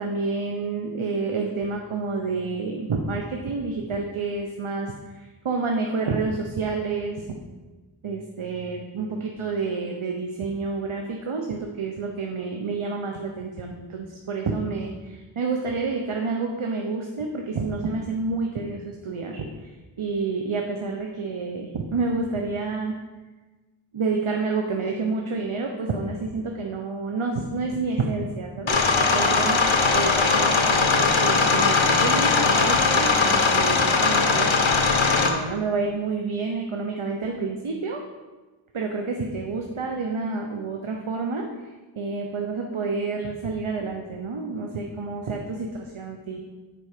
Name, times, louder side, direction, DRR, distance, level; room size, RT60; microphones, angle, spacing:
voice 1, 0.0-7.2 8.0-19.7 20.0-23.0 23.9-29.6 29.9-34.5 35.2-38.0 38.7-41.5 42.0-46.4, right 4 dB, 80° right, 2 dB, 1.0 m, -29 dB
sound 1, 28.7-35.3, left 4 dB, 70° left, 1.2 m, -20 dB
10.0 x 4.7 x 6.6 m, 1.2 s
wide cardioid pair, 40°, 48 cm